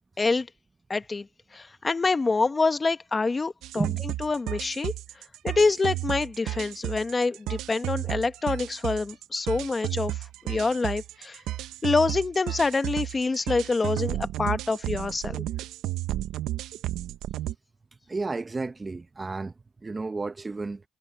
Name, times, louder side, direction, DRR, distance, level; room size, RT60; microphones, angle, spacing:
voice 1, 0.9-1.3 1.5-3.9 4.2-4.9 5.4-10.2 10.4-11.4 11.8-15.4, left 3 dB, 30° left, 1.2 m, -26 dB
sound 1, 3.6-17.5, right 15 dB, 85° right, 0.6 m, -33 dB
voice 2, 18.1-19.5 19.8-20.8, right 3 dB, 25° right, 0.9 m, -31 dB
cardioid pair, 90°, 0 cm